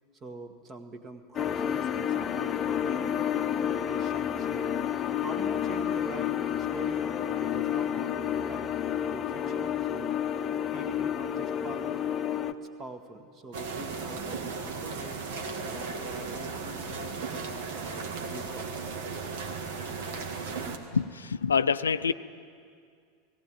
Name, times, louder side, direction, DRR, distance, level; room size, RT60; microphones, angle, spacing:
voice 1, 0.2-3.5 3.9-4.7 5.2-8.7 9.1-10.2 10.7-12.0 12.8-15.2 15.6-18.8, right 2 dB, 30° right, 7 dB, 1.9 m, -44 dB
sound 1, 1.3-12.5, left 9 dB, 30° left, 0.8 m, -30 dB
sound 2, 13.5-20.8, right 4 dB, 60° right, 1.8 m, -36 dB
voice 2, 20.9-22.1, left 6 dB, 75° left, 13 dB, 0.5 m, -26 dB
17.5 x 17.5 x 9.0 m, 2.2 s
figure-of-eight pair, 80°, 0 cm